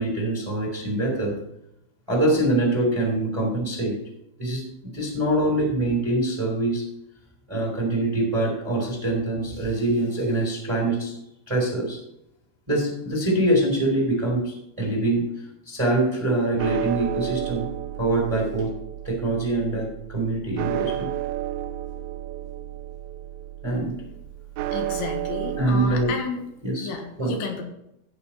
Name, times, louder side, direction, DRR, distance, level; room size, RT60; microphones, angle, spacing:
voice 1, 0.0-1.4 2.1-3.9 4.4-4.6 4.9-6.8 7.5-11.2 11.5-12.0 12.7-17.7 18.0-18.7 19.0-21.1 23.6-24.0 25.6-26.1 26.6-26.9 27.2-27.3, right 1 dB, 10° right, 0 dB, 2.3 m, -24 dB
sound 1, 16.6-26.1, right 13 dB, 85° right, 2.3 m, -32 dB
voice 2, 24.7-26.4 26.8-27.6, left 5 dB, 85° left, 3 dB, 3.7 m, -32 dB
16.5 x 6.0 x 4.3 m, 0.82 s
omnidirectional pair, 5.2 m